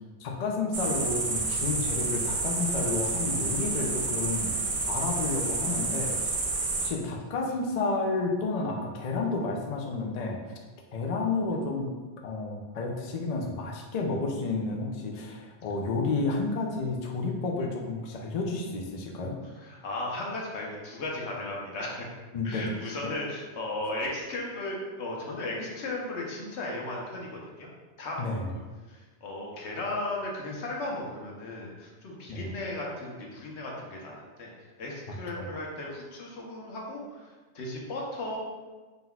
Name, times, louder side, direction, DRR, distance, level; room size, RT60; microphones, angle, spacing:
voice 1, 0.2-4.5 4.9-6.3 6.8-10.4 10.9-11.9 12.2-19.4 22.3-22.7 28.2-28.5 32.3-32.4 35.1-35.5, left 3 dB, 50° left, 1 dB, 0.5 m, -31 dB
sound 1, 0.7-6.9, right 3 dB, 50° right, 0.4 m, -29 dB
voice 2, 5.2-6.0 7.5-7.6 19.4-22.1 22.4-27.7 28.0-28.4 28.9-38.4, left 2 dB, 90° left, -2 dB, 1.1 m, -36 dB
4.0 x 3.9 x 2.3 m, 1.3 s
omnidirectional pair, 1.1 m